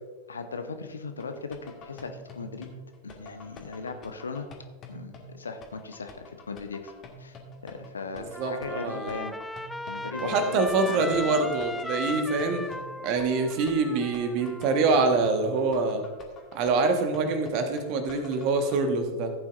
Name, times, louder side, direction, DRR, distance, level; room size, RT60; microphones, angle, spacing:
voice 1, 0.3-2.7 3.0-4.5 4.9-6.9 7.2-9.4 9.9-11.3, left 4 dB, 75° left, 8 dB, 0.9 m, -38 dB
sound 1, 1.2-18.8, left 2 dB, 30° left, 1.8 m, -48 dB
voice 2, 8.2-9.2 10.2-12.6 13.0-16.0 16.5-19.3, right 3 dB, 45° right, 6 dB, 1.4 m, -25 dB
Trumpet, 8.3-15.0, left 1 dB, 5° left, 0.3 m, -37 dB
15.0 x 8.5 x 2.6 m, 1.4 s
figure-of-eight pair, 90°, 0 cm